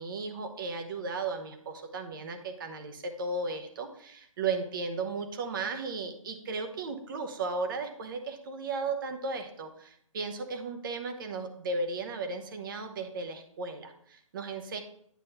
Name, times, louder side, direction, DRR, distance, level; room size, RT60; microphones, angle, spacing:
voice 1, 0.0-14.8, right 3 dB, 40° right, 6 dB, 1.0 m, -35 dB
9.3 x 3.2 x 5.8 m, 0.68 s
hypercardioid pair, 150°, 18 cm